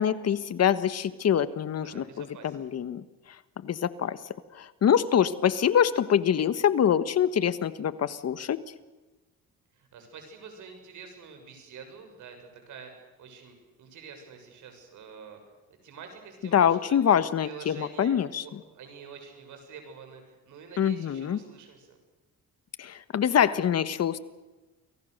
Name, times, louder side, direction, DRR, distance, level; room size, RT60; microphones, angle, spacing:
voice 1, 0.0-2.0 2.4-3.0 3.6-4.2 4.6-8.6 16.5-18.4 20.8-21.4 22.8-24.2, left 9 dB, 55° left, 13 dB, 1.4 m, -24 dB
voice 2, 1.8-2.7 9.7-15.4 15.7-18.2 18.4-22.0, right 6 dB, 75° right, 5 dB, 7.3 m, -47 dB
29.5 x 23.0 x 6.7 m, 1.2 s
cardioid pair, 90°, 30 cm